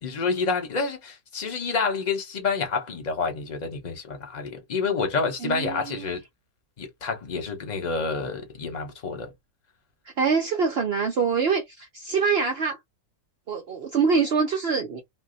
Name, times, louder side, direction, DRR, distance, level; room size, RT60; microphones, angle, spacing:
voice 1, 0.0-6.2 6.8-9.3, left 4 dB, 35° left, 0.8 m, -28 dB
voice 2, 5.4-6.1 10.2-12.8 13.5-15.0, right 5 dB, 70° right, 0.5 m, -24 dB
2.6 x 2.2 x 3.8 m
omnidirectional pair, 1.7 m